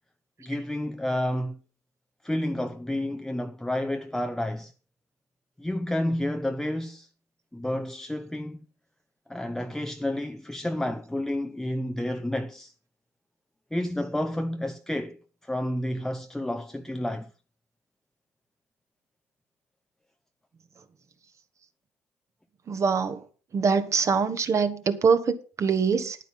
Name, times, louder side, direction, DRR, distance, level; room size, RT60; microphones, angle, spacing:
voice 1, 0.4-1.6 2.2-4.7 5.6-7.1 7.5-8.6 9.3-12.7 13.7-17.3, left 1 dB, 5° left, 0.8 m, -30 dB
voice 2, 22.7-23.2 23.5-26.2, right 5 dB, 40° right, 1.5 m, -24 dB
10.0 x 9.2 x 5.4 m
hypercardioid pair, 65°, 8 cm